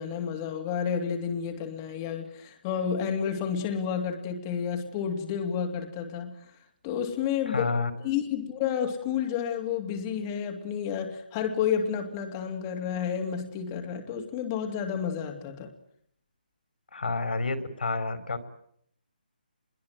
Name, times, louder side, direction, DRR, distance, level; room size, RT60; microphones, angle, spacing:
voice 1, 0.0-6.4 6.8-7.7 8.0-15.7, left 7 dB, 20° left, 3 dB, 2.6 m, -30 dB
voice 2, 7.5-7.9 16.9-18.5, left 3 dB, 75° left, 11 dB, 4.7 m, -29 dB
28.0 x 22.0 x 9.1 m, 0.69 s
hypercardioid pair, 165°, 5 cm